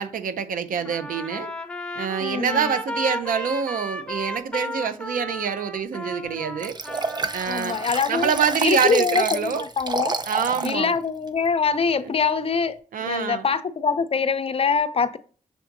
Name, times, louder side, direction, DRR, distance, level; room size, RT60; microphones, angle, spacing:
voice 1, 0.0-1.5 2.0-6.8 7.3-7.8 8.1-9.6 10.3-11.0 12.0-12.1 12.9-13.5, right 7 dB, 80° right, 0.5 m, -26 dB
Trumpet, 0.8-8.0, left 1 dB, 5° left, 0.8 m, -34 dB
voice 2, 2.2-2.7 7.5-8.3 8.6-10.1 10.6-15.2, left 5 dB, 45° left, 0.5 m, -24 dB
Liquid, 6.6-10.8 11.3-11.4, right 3 dB, 30° right, 0.5 m, -29 dB
5.9 x 3.4 x 2.6 m
cardioid pair, 70°, 14 cm